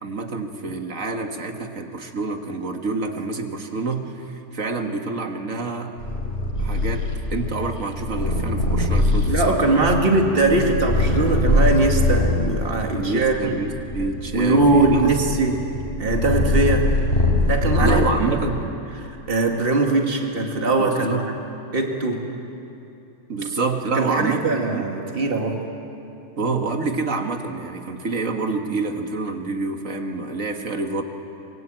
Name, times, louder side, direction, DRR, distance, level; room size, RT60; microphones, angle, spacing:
voice 1, 0.0-6.0 6.6-9.9 13.0-15.1 17.8-18.6 20.8-21.2 23.3-24.5 24.7-24.9 26.4-31.0, right 3 dB, 60° right, 4 dB, 2.0 m, -27 dB
Purr, 6.0-12.5 13.2-18.4, left 1 dB, 40° left, 4.5 m, -22 dB
voice 2, 9.3-13.6 14.3-15.6 16.0-16.9 17.5-18.1 18.4-18.5 19.0-21.3 21.7-22.3 23.9-25.6, right 2 dB, 35° right, 2 dB, 2.3 m, -21 dB
24.5 x 22.5 x 9.0 m, 2.8 s
omnidirectional pair, 1.6 m